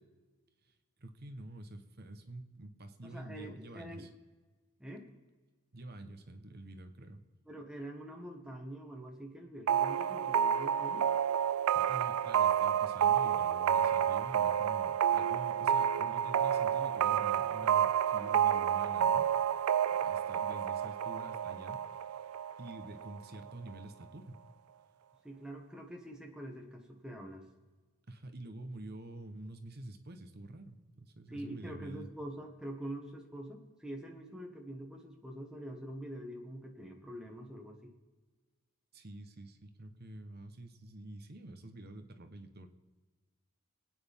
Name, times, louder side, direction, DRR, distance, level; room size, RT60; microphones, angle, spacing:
voice 1, 0.6-4.1 5.7-7.2 11.7-19.3 19.9-21.8 22.6-24.4 28.1-32.1 38.9-42.7, right 1 dB, 45° right, 8 dB, 1.1 m, -48 dB
voice 2, 3.0-4.1 4.8-5.1 7.5-11.1 25.2-27.4 31.3-37.9, right 1 dB, 5° right, 0 dB, 1.6 m, -45 dB
sound 1, 9.7-23.2, right 9 dB, 80° right, 0.3 m, -30 dB
26.5 x 9.3 x 3.6 m, 1.3 s
head